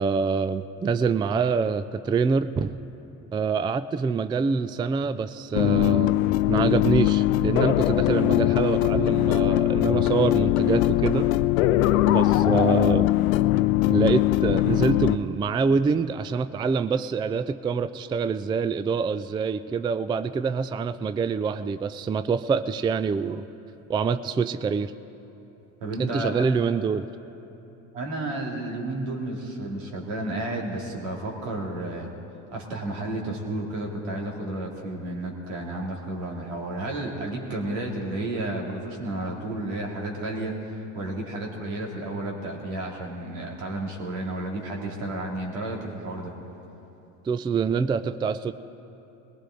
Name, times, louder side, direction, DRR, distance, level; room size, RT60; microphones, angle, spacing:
voice 1, 0.0-2.8 3.3-6.1 6.5-11.3 12.1-13.1 13.9-23.4 23.9-24.9 26.0-27.1 47.3-48.5, right 5 dB, 15° right, 13 dB, 0.3 m, -25 dB
sound 1, 5.5-15.2, left 15 dB, 80° left, 0.6 m, -21 dB
voice 2, 25.8-26.5 27.9-32.1 32.5-46.3, right 1 dB, 80° right, -2 dB, 2.9 m, -32 dB
20.5 x 18.0 x 3.8 m, 3.0 s
hypercardioid pair, 75°, 39 cm